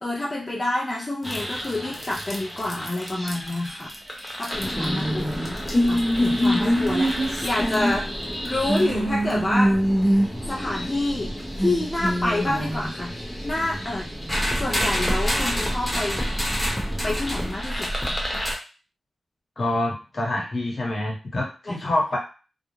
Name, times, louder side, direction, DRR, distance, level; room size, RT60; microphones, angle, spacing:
voice 1, 0.0-7.1 7.4-9.7 10.5-11.3 11.6-14.1 14.6-16.2 17.0-18.2 21.7-21.9, left 2 dB, 25° left, -2 dB, 0.4 m, -28 dB
sound 1, 1.2-18.5, equal, 5° left, 0.9 m, -26 dB
voice 2, 19.6-22.2, left 1 dB, 55° left, -2 dB, 1.0 m, -26 dB
2.4 x 2.0 x 3.1 m, 0.34 s
cardioid pair, 70°, 0 cm